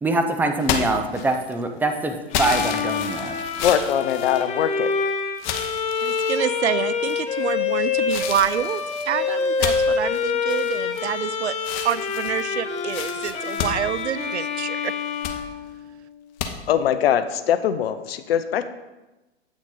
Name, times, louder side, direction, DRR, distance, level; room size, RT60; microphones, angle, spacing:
voice 1, 0.0-3.4, right 2 dB, 5° right, 5 dB, 0.4 m, -24 dB
sound 1, 0.6-1.6 2.3-4.9 5.4-6.4 7.0-7.5 8.1-11.3 11.6-14.6 15.0-15.4 16.4-16.5, left 7 dB, 45° left, 1.0 m, -31 dB
Bowed string instrument, 2.3-16.2, left 5 dB, 20° left, 0.8 m, -26 dB
voice 2, 3.6-4.9 16.7-18.7, left 9 dB, 65° left, 11 dB, 0.7 m, -22 dB
voice 3, 6.0-11.6 11.8-14.9, right 10 dB, 80° right, 16 dB, 0.5 m, -27 dB
8.4 x 6.0 x 3.9 m, 1.1 s
figure-of-eight pair, 105°, 33 cm